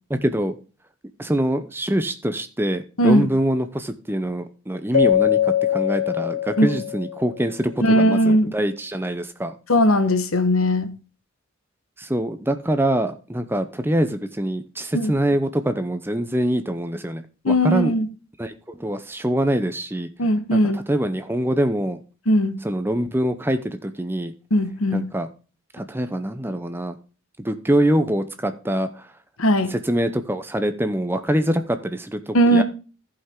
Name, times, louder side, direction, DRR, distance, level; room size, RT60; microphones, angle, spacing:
voice 1, 0.1-0.5 1.2-9.6 12.0-17.9 18.4-20.1 20.5-22.0 22.6-24.3 24.9-25.3 25.7-26.9 27.4-29.1 29.7-32.6, right 1 dB, 10° right, 0.7 m, -24 dB
Keyboard (musical), 4.9-7.4, left 9 dB, 60° left, 2.2 m, -22 dB
voice 2, 7.8-8.5 9.7-10.9 14.9-15.1 17.4-18.1 20.2-20.8 22.3-22.6 24.5-25.1 29.4-29.7 32.3-32.6, equal, 75° left, 1.2 m, -18 dB
14.5 x 5.7 x 3.6 m
head